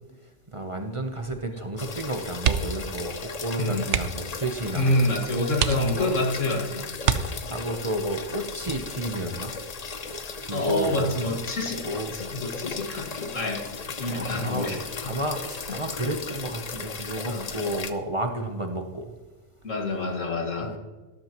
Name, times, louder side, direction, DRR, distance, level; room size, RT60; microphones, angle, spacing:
voice 1, 0.5-5.1 5.9-6.1 7.4-9.5 10.4-11.4 11.8-12.1 14.0-19.2 20.6-20.8, right 1 dB, 30° right, 4 dB, 0.8 m, -31 dB
sound 1, 1.8-17.9, left 4 dB, 40° left, 0.7 m, -36 dB
sound 2, 2.4-2.9 3.2-3.4 3.8-4.3 5.0-5.1 5.5-6.3 7.0-7.8 9.3-9.7 10.0-10.1, right 9 dB, 70° right, 0.9 m, -27 dB
voice 2, 4.7-7.3 10.5-11.8 12.1-14.8 15.0-15.1 17.3-17.5 19.6-20.7, left 1 dB, 85° left, 0 dB, 2.3 m, -27 dB
13.0 x 12.5 x 3.0 m, 1.2 s
omnidirectional pair, 1.3 m